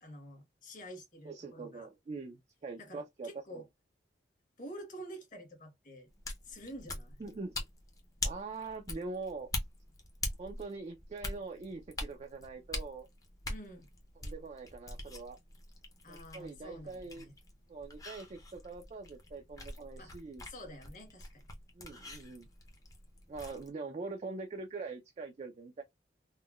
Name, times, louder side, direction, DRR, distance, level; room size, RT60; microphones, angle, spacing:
voice 1, 0.0-1.9 2.8-3.6 4.6-6.1 6.4-7.2 13.5-13.9 16.0-17.3 20.0-20.1 20.5-21.5, equal, 45° left, 1.1 m, -48 dB
voice 2, 1.2-3.4 7.2-7.6 8.2-9.5 10.4-13.1 14.2-15.4 16.1-17.2 17.7-20.4 21.7-22.5 23.3-25.8, right 3 dB, 35° right, 0.4 m, -43 dB
sound 1, 6.1-23.7, left 2 dB, 20° left, 0.6 m, -44 dB
3.6 x 2.1 x 2.3 m
head